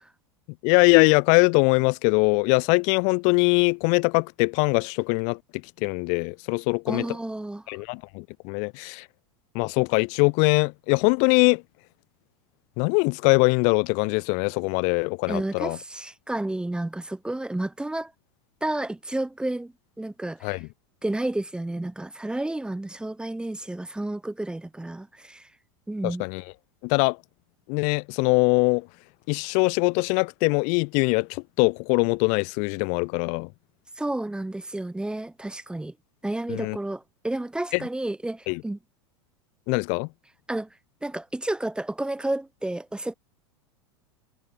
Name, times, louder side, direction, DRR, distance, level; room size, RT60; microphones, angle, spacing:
voice 1, 0.6-5.4 5.8-7.1 7.7-9.0 9.5-11.6 12.8-15.8 20.4-20.7 26.0-26.4 26.8-27.2 27.7-28.9 29.3-33.5 36.5-36.8 37.7-37.8 38.5-38.6 39.7-40.1, left 37 dB, 55° left, 1.4 m, -22 dB
voice 2, 6.9-7.6 15.3-18.1 18.6-20.6 21.0-25.5 25.9-26.2 34.0-35.9 36.2-38.8 40.5-40.7 41.0-43.1, right 1 dB, 5° right, 1.3 m, -31 dB
hypercardioid pair, 95°, 14 cm